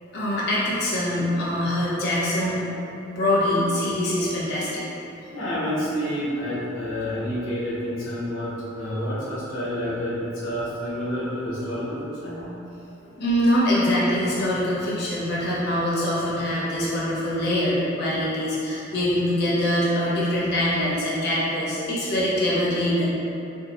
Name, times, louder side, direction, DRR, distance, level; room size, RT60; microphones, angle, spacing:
voice 1, 0.1-2.7 3.1-4.9 13.2-23.0, left 1 dB, 55° left, -7 dB, 0.9 m, -24 dB
voice 2, 5.3-12.5, equal, 85° left, -8 dB, 1.1 m, -29 dB
3.7 x 2.7 x 2.9 m, 2.9 s
head